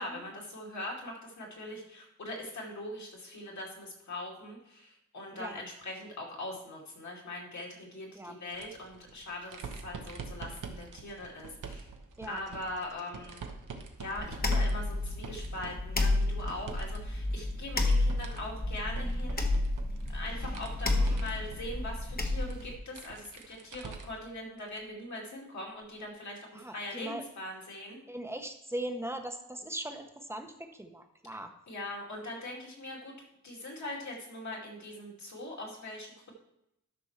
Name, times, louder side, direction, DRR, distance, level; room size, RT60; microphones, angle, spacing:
voice 1, 0.0-11.9 12.3-13.5 14.0-19.5 20.1-28.0 31.7-33.1 33.4-36.3, left 1 dB, 65° left, -2 dB, 2.4 m, -41 dB
sound 1, 8.5-17.0 17.3-24.3 24.7-24.8 26.0-26.1, right 4 dB, 90° right, 1.0 m, -46 dB
sound 2, 14.2-22.8, left 2 dB, 30° left, 1.0 m, -31 dB
voice 2, 26.5-27.2 28.1-31.5, right 1 dB, 10° right, 5 dB, 0.8 m, -40 dB
12.5 x 6.0 x 3.2 m, 0.82 s
wide cardioid pair, 155°, 30 cm